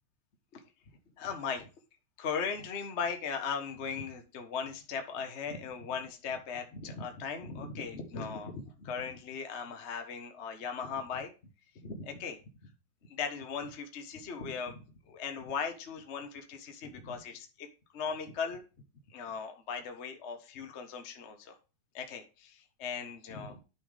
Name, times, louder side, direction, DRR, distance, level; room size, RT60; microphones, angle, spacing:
voice 1, 1.2-1.7 2.2-11.3 11.7-12.4 13.1-17.7 17.9-18.6 19.1-21.6 21.9-23.6, left 6 dB, 65° left, 5 dB, 0.6 m, -38 dB
9.9 x 5.9 x 3.4 m, 0.32 s
omnidirectional pair, 3.3 m